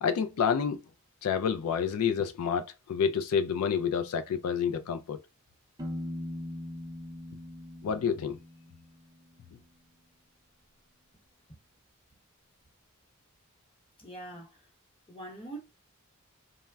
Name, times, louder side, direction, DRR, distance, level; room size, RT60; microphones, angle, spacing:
voice 1, 0.0-0.8 1.2-5.2 7.8-8.4, left 7 dB, 85° left, 0.4 m, -28 dB
Piano, 5.8-9.5, left 1 dB, 15° right, 0.5 m, -41 dB
voice 2, 14.0-14.6 15.1-15.6, right 2 dB, 25° left, 0.9 m, -43 dB
3.3 x 2.1 x 2.2 m
head